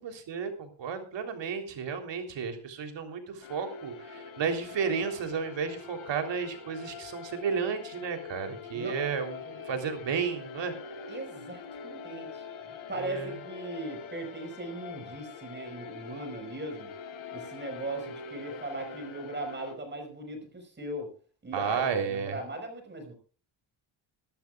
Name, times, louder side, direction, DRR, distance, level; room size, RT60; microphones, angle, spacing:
voice 1, 0.0-10.7 13.0-13.4 21.5-22.4, right 6 dB, 60° right, 6 dB, 3.6 m, -33 dB
sound 1, 3.4-19.7, left 4 dB, 70° left, 3.9 m, -44 dB
voice 2, 11.1-16.9 17.3-21.1 21.4-23.1, right 2 dB, 20° right, 4 dB, 5.0 m, -39 dB
23.0 x 13.0 x 2.4 m, 0.38 s
cardioid pair, 165°, 49 cm